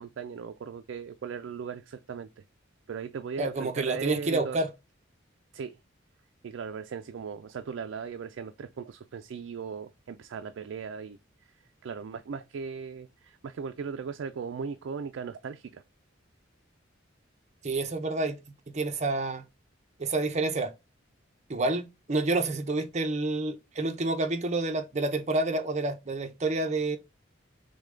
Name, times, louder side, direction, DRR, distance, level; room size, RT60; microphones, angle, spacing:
voice 1, 0.0-2.4 2.9-4.6 5.5-5.8 6.4-11.2 11.8-15.8, right 6 dB, 65° right, 0.4 m, -38 dB
voice 2, 3.4-4.7 17.6-18.4 18.7-19.4 20.0-20.7 21.5-27.0, right 2 dB, 35° right, 0.7 m, -28 dB
6.4 x 2.2 x 3.6 m
head